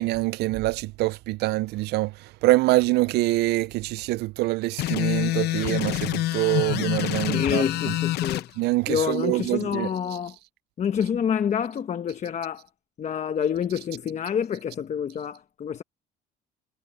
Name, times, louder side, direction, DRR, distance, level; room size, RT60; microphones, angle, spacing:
voice 1, 0.0-7.9 8.6-9.9, right 19 dB, 75° right, 0.4 m, -25 dB
sound 1, 4.8-8.5, left 16 dB, 75° left, 0.7 m, -26 dB
voice 2, 7.2-8.5 8.9-10.4 10.8-12.7 13.0-15.8, left 8 dB, 40° left, 1.0 m, -27 dB
cardioid pair, 110°, 17 cm